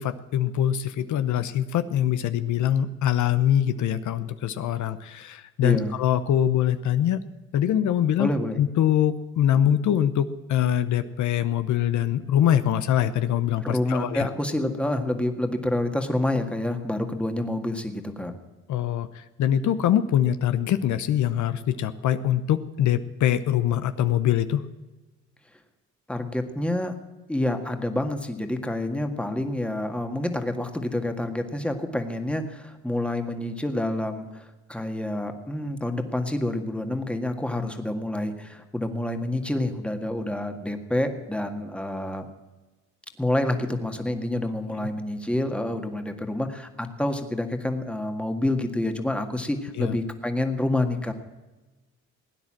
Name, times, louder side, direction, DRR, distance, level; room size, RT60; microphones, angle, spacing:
voice 1, 0.0-7.2 7.5-8.3 8.6-14.3 18.7-24.7 44.7-44.9 49.8-50.0, left 10 dB, 75° left, 11 dB, 0.8 m, -23 dB
voice 2, 5.6-5.9 8.2-8.6 13.6-18.3 26.1-26.9 27.3-42.3 43.2-51.1, left 1 dB, 5° left, 5 dB, 1.7 m, -28 dB
17.5 x 9.7 x 7.5 m, 1.2 s
cardioid pair, 90°, 30 cm